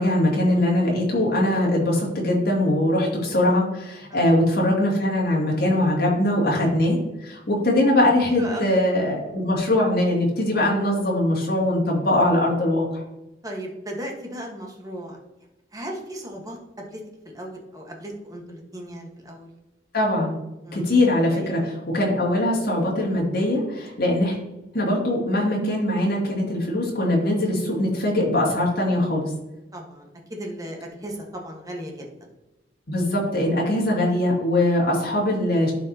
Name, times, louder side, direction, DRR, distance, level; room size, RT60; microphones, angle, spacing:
voice 1, 0.0-13.0 19.9-20.4 20.7-24.4 24.7-29.3 32.9-35.7, left 1 dB, 60° left, -3 dB, 2.4 m, -21 dB
voice 2, 8.3-8.8 9.2-9.6 13.4-15.2 15.7-19.5 20.6-21.0 21.3-21.7 29.7-32.3, equal, 20° right, 0 dB, 1.4 m, -36 dB
11.5 x 4.8 x 2.8 m, 0.98 s
head